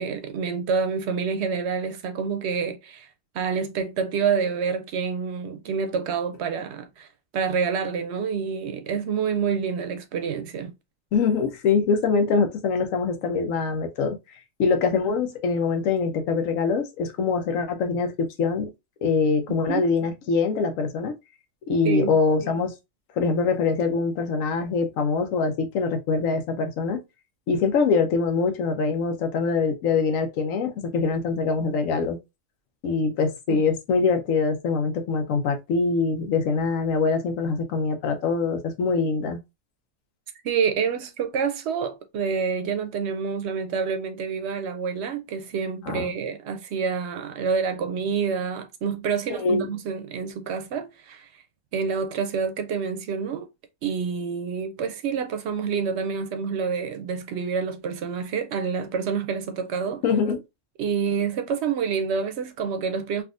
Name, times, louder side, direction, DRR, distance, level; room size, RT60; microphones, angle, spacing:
voice 1, 0.0-3.1 3.3-7.1 7.3-10.7 19.7-19.9 21.8-22.1 33.5-33.6 40.4-51.3 51.7-53.5 53.8-60.0 60.8-63.2, right 6 dB, 65° right, 0.8 m, -27 dB
voice 2, 11.1-14.2 14.6-18.7 19.0-21.1 21.7-22.7 23.2-27.0 27.5-32.2 32.8-39.4 45.9-46.1 49.3-49.7 60.0-60.4, left 4 dB, 85° left, 1.1 m, -24 dB
3.5 x 2.5 x 2.4 m
omnidirectional pair, 1.3 m